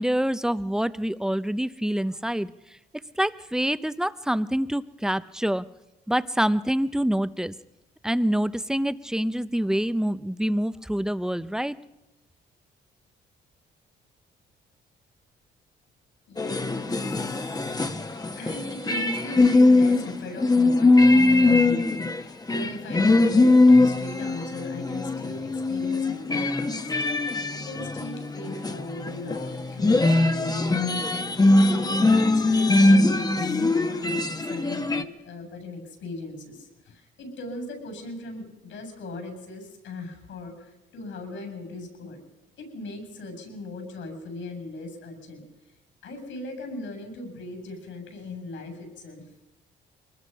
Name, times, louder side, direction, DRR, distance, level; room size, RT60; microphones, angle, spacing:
voice 1, 0.0-2.5 3.2-5.7 6.1-7.5 8.0-11.8, equal, 5° right, 14 dB, 0.7 m, -26 dB
voice 2, 16.3-26.8 27.2-31.1 31.5-42.2 42.6-45.4 46.0-49.3, left 2 dB, 75° left, 5 dB, 7.7 m, -38 dB
sound 1, 16.4-22.2 22.5-35.0, left 2 dB, 20° left, 1.2 m, -21 dB
23.5 x 20.0 x 5.6 m, 0.95 s
cardioid pair, 90°, 20 cm